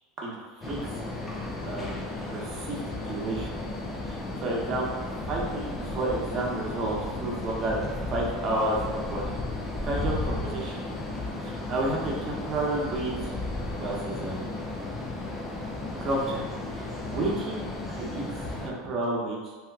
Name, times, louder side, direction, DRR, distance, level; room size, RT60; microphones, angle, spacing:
voice 1, 0.2-0.8 1.6-3.6 4.1-5.0 5.3-9.2 9.8-10.8 11.4-13.3 13.7-14.5 16.0-16.5 16.8-18.3 18.6-19.5, right 2 dB, 40° right, -3 dB, 0.8 m, -31 dB
sound 1, 0.6-18.7, left 2 dB, 15° left, 0.5 m, -34 dB
2.8 x 2.3 x 3.4 m, 1.4 s
supercardioid pair, 120°, 0 cm